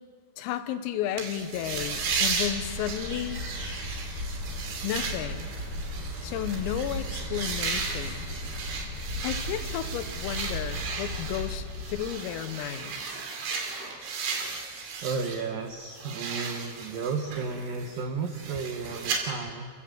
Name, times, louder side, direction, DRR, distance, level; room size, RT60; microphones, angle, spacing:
voice 1, 0.4-3.4 4.8-5.5 6.2-8.3 9.2-13.2, left 10 dB, 85° left, 10 dB, 3.8 m, -33 dB
sound 1, 1.2-15.4 15.7-19.2, right 5 dB, 65° right, 5.1 m, -35 dB
sound 2, 1.5-10.2 10.5-10.7, right 4 dB, 25° right, 4.3 m, -47 dB
sound 3, 1.7-12.0, left 1 dB, 50° left, 3.7 m, -37 dB
voice 2, 15.0-19.7, right 5 dB, 90° right, 4 dB, 1.9 m, -33 dB
28.0 x 16.0 x 7.9 m, 2.1 s
omnidirectional pair, 5.9 m